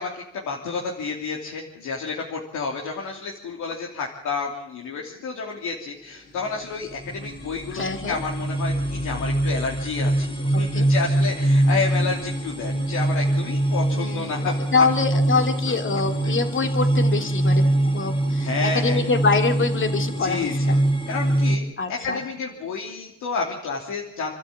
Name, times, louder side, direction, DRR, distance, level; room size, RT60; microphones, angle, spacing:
voice 1, 0.0-14.8 16.2-16.3 18.4-19.0 20.2-24.3, left 4 dB, 75° left, -1 dB, 3.2 m, -30 dB
sound 1, 6.3-21.6, right 1 dB, 15° left, 2.5 m, -23 dB
voice 2, 7.7-8.2 10.5-10.9 13.9-14.5 14.7-20.8 21.8-22.2, left 4 dB, 40° left, 6 dB, 2.7 m, -25 dB
28.0 x 12.5 x 8.7 m, 0.76 s
cardioid pair, 90°, 30 cm